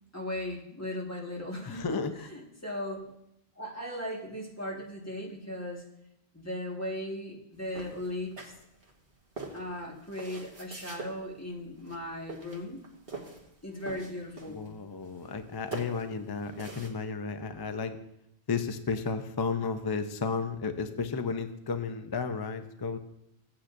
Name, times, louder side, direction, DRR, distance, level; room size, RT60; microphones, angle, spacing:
voice 1, 0.1-3.1 3.6-5.8 6.3-8.5 9.5-12.8 13.6-14.7, left 1 dB, 15° left, -3 dB, 1.6 m, -37 dB
voice 2, 1.7-2.1 14.5-18.0 18.5-23.0, left 5 dB, 35° left, 8 dB, 0.4 m, -33 dB
sound 1, 7.7-8.9 9.4-11.1 11.8-12.0 12.3-13.5 13.8-14.7 15.0-16.9, right 3 dB, 65° right, 1.7 m, -43 dB
14.5 x 8.7 x 2.6 m, 0.79 s
omnidirectional pair, 1.1 m